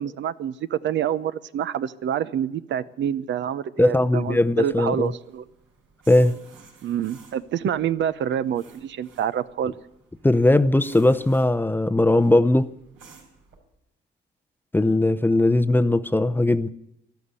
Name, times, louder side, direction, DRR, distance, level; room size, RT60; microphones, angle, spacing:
voice 1, 0.0-5.4 6.8-9.7, right 9 dB, 65° right, 0.8 m, -27 dB
voice 2, 3.8-5.1 6.1-6.4 10.2-12.7 14.7-16.7, left 1 dB, 10° left, 0.7 m, -19 dB
sound 1, 4.4-13.6, right 5 dB, 85° right, 4.8 m, -53 dB
13.0 x 13.0 x 8.2 m
cardioid pair, 90°, 20 cm